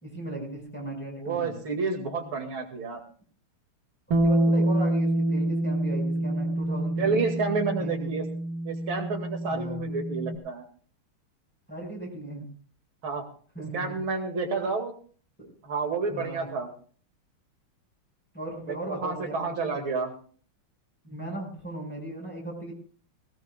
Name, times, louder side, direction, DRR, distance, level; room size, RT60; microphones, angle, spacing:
voice 1, 0.0-1.6 4.1-7.2 7.8-8.1 9.5-9.8 11.7-12.5 13.6-14.0 15.4-15.5 16.1-16.5 18.3-19.7 21.0-22.7, right 1 dB, 5° left, -1 dB, 5.2 m, -37 dB
voice 2, 1.2-3.0 7.0-8.2 8.6-10.6 13.0-13.3 13.7-14.9 15.6-16.7 18.7-20.1, right 4 dB, 70° right, 4 dB, 3.0 m, -30 dB
Bass guitar, 4.1-10.4, right 1 dB, 45° right, 1.8 m, -27 dB
18.5 x 18.0 x 2.4 m, 0.43 s
omnidirectional pair, 2.4 m